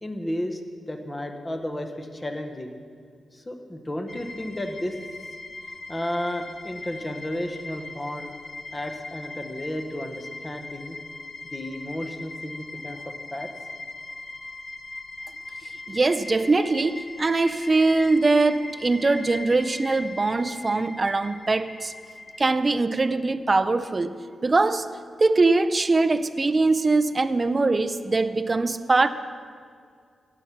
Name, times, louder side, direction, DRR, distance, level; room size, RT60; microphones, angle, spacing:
voice 1, 0.0-0.6 0.9-2.7 3.3-5.0 5.9-8.3 8.7-11.0 11.4-13.5, left 1 dB, 20° left, 5 dB, 1.1 m, -33 dB
sound 1, 4.1-22.4, left 3 dB, 45° left, 0.6 m, -40 dB
voice 2, 15.9-21.9 22.4-24.1 24.4-24.9 25.2-29.1, right 3 dB, 30° right, 12 dB, 0.5 m, -22 dB
16.5 x 5.8 x 6.2 m, 2.2 s
wide cardioid pair, 100°, 0 cm